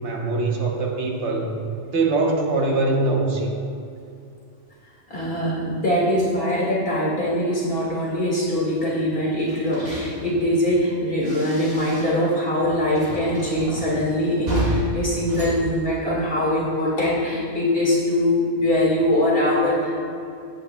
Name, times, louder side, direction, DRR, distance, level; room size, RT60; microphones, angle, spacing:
voice 1, 0.0-1.6 1.9-3.5, right 3 dB, 70° right, 0 dB, 1.3 m, -22 dB
voice 2, 5.1-20.0, left 1 dB, 50° left, -6 dB, 2.2 m, -22 dB
sound 1, 9.4-12.3 12.6-16.5, right 1 dB, 35° right, 1.6 m, -32 dB
14.5 x 8.4 x 2.2 m, 2.5 s
omnidirectional pair, 1.2 m